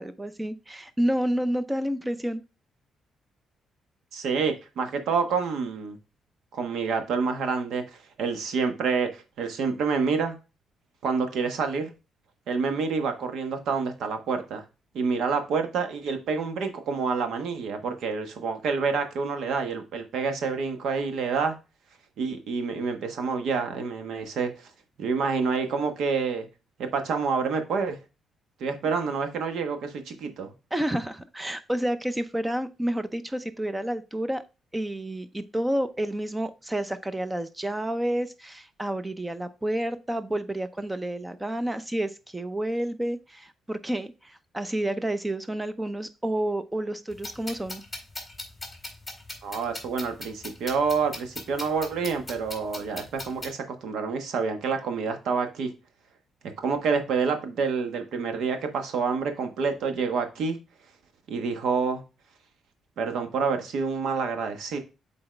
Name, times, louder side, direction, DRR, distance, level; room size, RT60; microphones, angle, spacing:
voice 1, 0.0-2.4 30.7-34.4 34.7-47.8, right 1 dB, 10° right, 0.5 m, -29 dB
voice 2, 4.1-6.0 6.5-10.4 11.0-11.9 12.5-14.6 14.9-21.6 22.2-24.7 25.0-26.5 26.8-28.0 28.6-30.5 49.4-55.7 56.6-60.6 61.3-62.0 63.0-64.8, right 5 dB, 75° right, 1.2 m, -28 dB
sound 1, 47.1-53.5, left 2 dB, 10° left, 2.0 m, -40 dB
7.7 x 4.0 x 3.3 m
cardioid pair, 145°, 0 cm